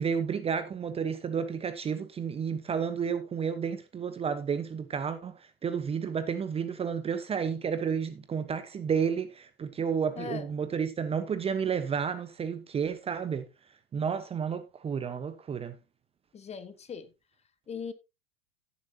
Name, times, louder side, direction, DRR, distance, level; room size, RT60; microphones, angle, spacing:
voice 1, 0.0-5.3 5.6-13.5 13.9-15.7, right 6 dB, 20° right, 1.0 m, -31 dB
voice 2, 10.1-10.5 16.3-17.1 17.7-17.9, left 6 dB, 20° left, 1.4 m, -39 dB
16.0 x 7.2 x 2.8 m
figure-of-eight pair, 85°, 30 cm